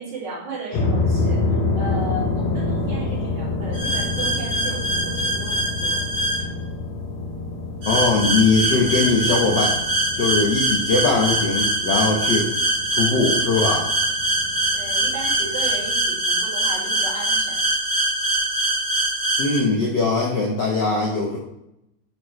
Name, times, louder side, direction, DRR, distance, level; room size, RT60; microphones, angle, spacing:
voice 1, 0.0-1.4 1.7-6.1 14.7-17.7, right 2 dB, 70° right, -7 dB, 4.0 m, -35 dB
sound 1, 0.7-15.9, left 3 dB, 85° left, 1.1 m, -28 dB
sound 2, 3.7-6.4 7.8-19.6, right 1 dB, 45° right, 3.1 m, -23 dB
voice 2, 7.9-9.8 10.2-12.5 12.9-13.9 19.4-21.4, left 3 dB, 60° left, -3 dB, 1.1 m, -20 dB
10.5 x 4.6 x 3.2 m, 0.85 s
omnidirectional pair, 3.5 m